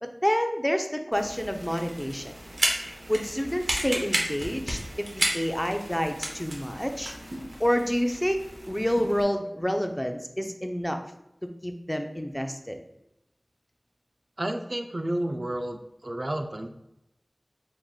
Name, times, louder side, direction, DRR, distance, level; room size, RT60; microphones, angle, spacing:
voice 1, 0.0-2.3 3.1-7.1 7.6-8.4 8.7-11.0 11.4-12.8, equal, 10° left, 5 dB, 0.4 m, -28 dB
sound 1, 1.1-9.2, right 1 dB, 75° right, 0.8 m, -33 dB
voice 2, 14.4-16.7, right 1 dB, 55° right, 5 dB, 0.4 m, -31 dB
4.7 x 3.6 x 2.3 m, 0.86 s
wide cardioid pair, 45°, 0 cm